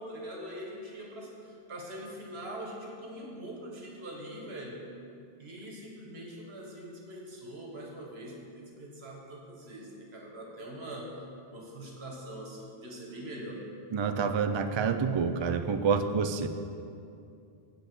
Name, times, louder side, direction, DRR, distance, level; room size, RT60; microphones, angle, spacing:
voice 1, 0.0-4.8 5.4-11.1 11.5-13.6, right 1 dB, 80° right, -1 dB, 1.8 m, -43 dB
voice 2, 13.9-16.5, right 5 dB, 50° right, 8 dB, 0.3 m, -28 dB
7.8 x 7.7 x 6.1 m, 2.5 s
omnidirectional pair, 1.1 m